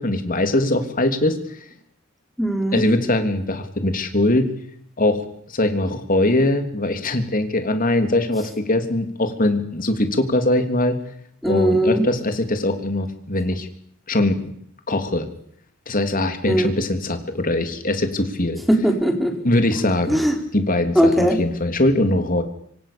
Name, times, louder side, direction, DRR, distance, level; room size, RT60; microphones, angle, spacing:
voice 1, 0.0-1.6 2.7-4.5 5.0-11.0 11.4-13.7 14.1-14.4 14.9-15.3 15.9-18.6 19.4-20.2 20.5-22.4, left 1 dB, 40° left, 7 dB, 3.2 m, -21 dB
voice 2, 2.4-2.8 11.4-12.0 16.5-16.7 18.7-19.3 20.1-20.3 20.9-21.4, equal, ahead, 3 dB, 4.2 m, -19 dB
26.0 x 25.0 x 7.0 m, 0.68 s
head